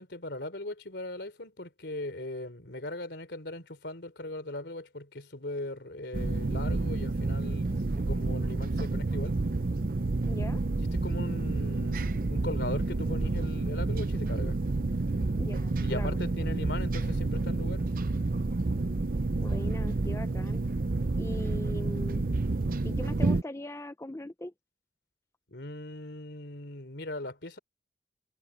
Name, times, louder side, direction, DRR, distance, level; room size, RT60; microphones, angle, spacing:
voice 1, 0.0-9.4 10.8-14.6 15.8-17.8 25.5-27.6, left 2 dB, 75° left, 3.4 m, -39 dB
sound 1, 6.1-23.4, right 2 dB, 50° right, 0.6 m, -29 dB
voice 2, 10.2-10.6 15.4-16.2 19.4-20.6 21.2-22.3 22.8-24.5, left 1 dB, 15° left, 0.6 m, -40 dB
head